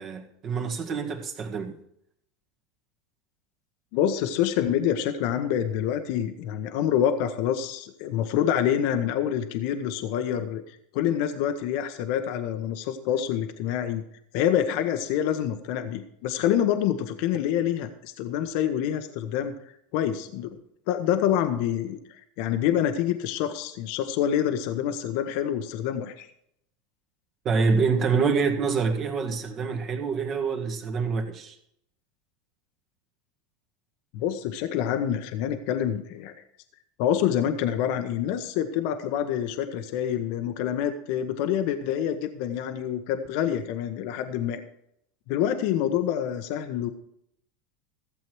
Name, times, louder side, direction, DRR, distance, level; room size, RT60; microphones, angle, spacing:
voice 1, 0.0-1.8 27.5-31.6, right 5 dB, 40° right, 1.8 m, -26 dB
voice 2, 3.9-14.0 14.3-19.5 19.9-20.6 20.9-26.3 34.1-36.3 37.0-44.6 45.3-46.9, left 10 dB, 60° left, 1.0 m, -27 dB
15.0 x 7.7 x 4.6 m
hypercardioid pair, 90°, 0 cm